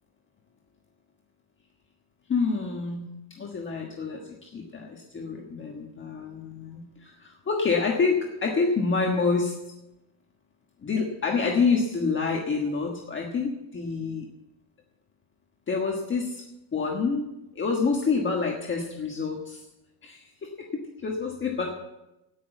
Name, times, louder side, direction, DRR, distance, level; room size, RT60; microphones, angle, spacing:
voice 1, 2.3-9.5 10.8-14.3 15.7-16.4 16.7-17.3 17.5-19.6 20.0-21.7, left 4 dB, 25° left, 0 dB, 1.5 m, -27 dB
17.0 x 6.4 x 8.1 m, 0.96 s
cardioid pair, 150°, 45 cm